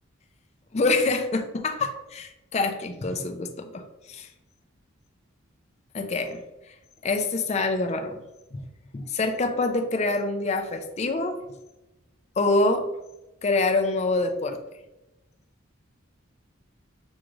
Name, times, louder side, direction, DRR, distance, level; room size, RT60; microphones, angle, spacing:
voice 1, 0.7-4.3 5.9-6.4 6.7-6.8 7.0-8.2 8.5-8.6 8.9-11.5 12.4-12.9 13.4-14.6, left 3 dB, 35° left, 6 dB, 0.4 m, -26 dB
6.2 x 2.4 x 3.0 m, 0.98 s
head